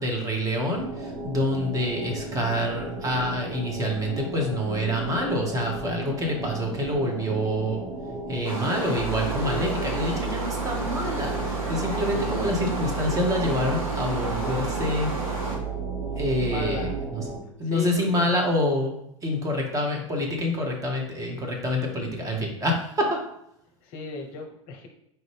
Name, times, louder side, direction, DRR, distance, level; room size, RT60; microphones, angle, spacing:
voice 1, 0.0-7.8 8.3-15.1 16.2-16.9 17.2-17.3 17.6-19.0 19.2-23.2, equal, 20° right, 1 dB, 1.0 m, -27 dB
sound 1, 0.7-17.4, right 2 dB, 60° right, 1.1 m, -36 dB
sound 2, 8.4-15.6, right 1 dB, 85° right, 1.2 m, -32 dB
sound 3, 9.0-17.0, right 11 dB, 5° left, 1.0 m, -34 dB
voice 2, 16.5-17.0 17.4-18.3 23.8-24.9, left 3 dB, 45° left, 4 dB, 0.7 m, -36 dB
4.4 x 2.6 x 3.3 m, 0.75 s
figure-of-eight pair, 85°, 17 cm